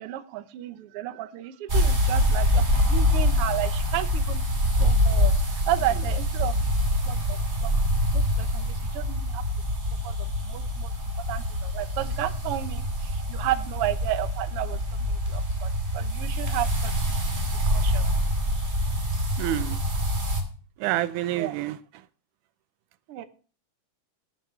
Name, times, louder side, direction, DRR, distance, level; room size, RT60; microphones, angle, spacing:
voice 1, 0.0-4.4 4.8-6.7 7.1-7.8 8.1-9.5 10.0-10.9 11.2-17.1 17.5-18.0 21.4-21.6 23.1-23.2, right 13 dB, 65° right, 1.6 m, -32 dB
sound 1, 1.7-20.4, left 1 dB, 25° right, 2.3 m, -25 dB
voice 2, 19.4-19.8 20.8-21.8, right 14 dB, 90° right, 2.2 m, -27 dB
18.0 x 8.9 x 3.2 m
omnidirectional pair, 3.5 m